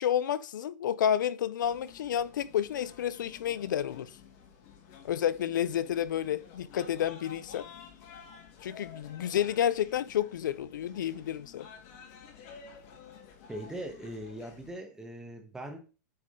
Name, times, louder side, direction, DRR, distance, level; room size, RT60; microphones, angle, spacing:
voice 1, 0.0-4.1 5.0-7.7 8.6-11.7, left 10 dB, 90° left, 0.5 m, -30 dB
sound 1, 1.6-14.7, left 6 dB, 45° left, 1.7 m, -52 dB
voice 2, 13.5-15.8, right 1 dB, 5° right, 1.1 m, -40 dB
8.6 x 3.7 x 3.7 m
supercardioid pair, 155°, 10 cm